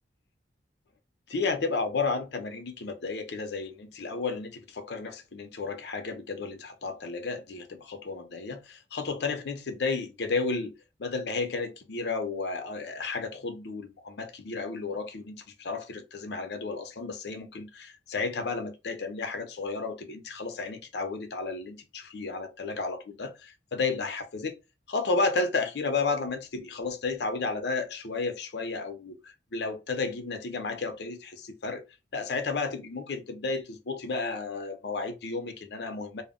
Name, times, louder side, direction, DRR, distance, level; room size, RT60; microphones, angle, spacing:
voice 1, 1.3-10.7 11.0-24.6 24.9-31.8 32.1-36.2, left 4 dB, 65° left, 0.5 m, -32 dB
2.1 x 2.0 x 3.5 m
head